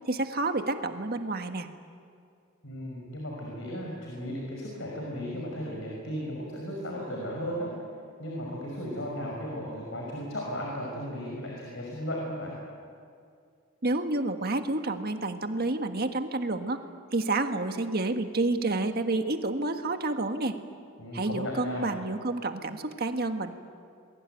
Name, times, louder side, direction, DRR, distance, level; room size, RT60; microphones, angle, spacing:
voice 1, 0.1-1.7 13.8-16.8 17.1-20.6 21.1-23.5, right 2 dB, 45° right, 6 dB, 1.6 m, -29 dB
voice 2, 2.6-7.7 8.2-12.5 21.0-21.9, equal, 65° left, -2 dB, 5.8 m, -35 dB
27.5 x 22.5 x 9.2 m, 2.3 s
head